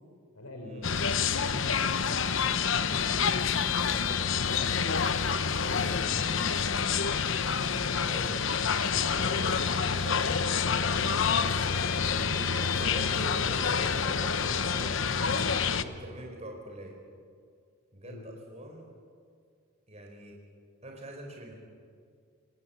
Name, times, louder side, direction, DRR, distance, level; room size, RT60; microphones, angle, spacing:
voice 1, 0.3-1.6 1.9-2.0 4.3-5.1 5.5-6.9 12.5-12.8 18.0-18.3, left 1 dB, 90° left, 3 dB, 3.9 m, -44 dB
sound 1, 0.8-15.8, left 6 dB, 60° left, 0.9 m, -28 dB
voice 2, 3.6-4.3 8.0-8.4 9.0-10.3 10.5-11.3 12.0-15.3 15.7-16.9 17.9-18.9 19.9-20.3 20.8-21.5, right 1 dB, 30° right, 0 dB, 4.3 m, -44 dB
26.5 x 19.0 x 9.3 m, 2.2 s
head